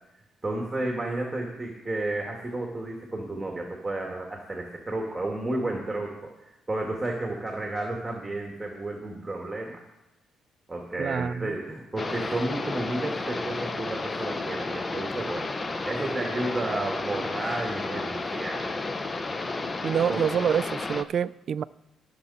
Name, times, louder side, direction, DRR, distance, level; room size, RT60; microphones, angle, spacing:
voice 1, 0.4-9.8 10.7-15.5 15.8-18.7 20.1-20.2, right 2 dB, 15° right, 2.2 m, -32 dB
voice 2, 11.0-11.6 19.8-21.6, right 8 dB, 55° right, 0.4 m, -27 dB
sound 1, 12.0-21.0, left 3 dB, 30° left, 0.8 m, -32 dB
19.0 x 6.5 x 4.3 m
cardioid pair, 90°, 0 cm